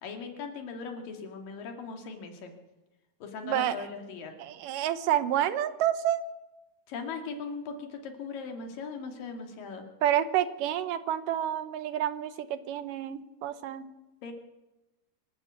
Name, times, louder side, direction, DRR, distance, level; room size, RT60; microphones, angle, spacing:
voice 1, 0.0-2.5 3.2-4.3 6.9-9.8 14.2-14.3, left 5 dB, 85° left, 4 dB, 4.1 m, -39 dB
voice 2, 3.4-3.9 4.4-6.2 10.0-13.9, right 11 dB, 80° right, 12 dB, 2.5 m, -29 dB
26.0 x 12.0 x 8.4 m, 1.0 s
omnidirectional pair, 3.8 m